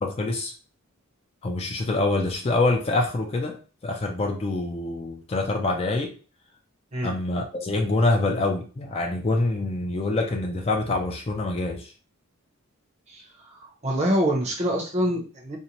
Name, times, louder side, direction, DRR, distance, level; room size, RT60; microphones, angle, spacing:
voice 1, 0.0-0.5 1.4-6.2 7.0-11.9, left 2 dB, 30° left, 3 dB, 0.3 m, -25 dB
voice 2, 13.6-15.6, equal, 30° right, 0 dB, 0.6 m, -25 dB
2.6 x 2.1 x 2.9 m, 0.36 s
head